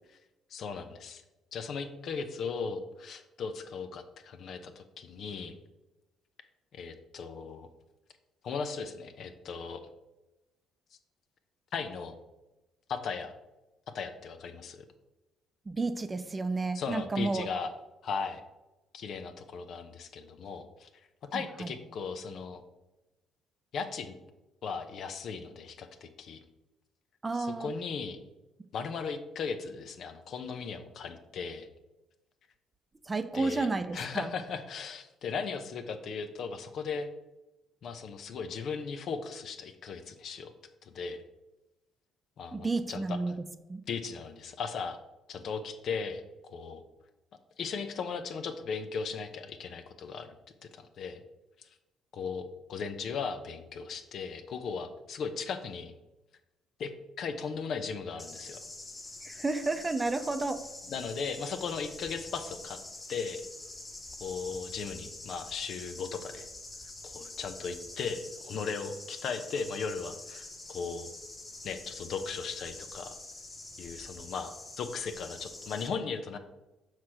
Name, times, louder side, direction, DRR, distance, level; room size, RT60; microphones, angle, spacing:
voice 1, 0.5-1.2 1.5-5.6 6.7-7.7 8.4-9.8 11.7-12.2 12.9-13.3 13.9-14.8 16.7-17.7 18.0-18.4 18.9-20.9 21.3-22.6 23.7-24.1 24.6-26.4 27.3-28.2 28.7-31.7 33.3-33.7 33.9-37.1 37.8-40.5 40.8-41.2 42.4-43.3 43.9-45.0 45.3-46.2 46.5-46.8 47.6-50.3 50.7-51.2 51.6-51.8 52.1-55.9 56.8-56.9 57.2-58.6 60.9-62.8 63.1-63.4 64.2-66.5 67.0-71.1 71.6-73.2 73.8-76.4, left 5 dB, 65° left, 8 dB, 0.6 m, -37 dB
voice 2, 15.7-17.5 21.6-21.7 27.2-27.7 33.1-34.3 42.5-43.3 43.7-43.8 59.2-60.6, right 3 dB, 25° right, 10 dB, 0.6 m, -31 dB
sound 1, 58.2-75.9, left 2 dB, 30° left, 1.6 m, -46 dB
5.9 x 3.2 x 5.7 m, 0.99 s
supercardioid pair, 65°, 0 cm